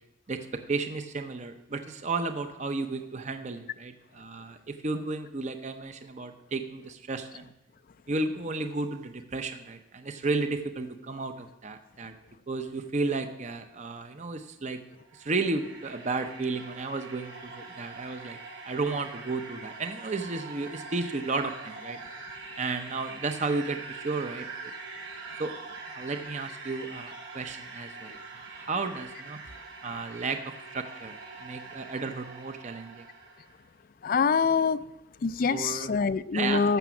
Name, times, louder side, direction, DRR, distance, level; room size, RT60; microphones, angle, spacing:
voice 1, 0.3-7.5 8.1-12.1 12.5-14.8 15.1-18.4 18.6-22.0 22.6-24.7 25.4-25.5 25.9-29.4 29.8-31.1 31.4-33.1 35.5-35.9 36.3-36.8, right 3 dB, 35° right, 0.6 m, -33 dB
sound 1, 14.9-33.6, right 4 dB, 70° right, 2.6 m, -44 dB
voice 2, 34.0-34.8 35.2-36.8, left 5 dB, 45° left, 0.4 m, -25 dB
13.5 x 6.0 x 7.0 m
head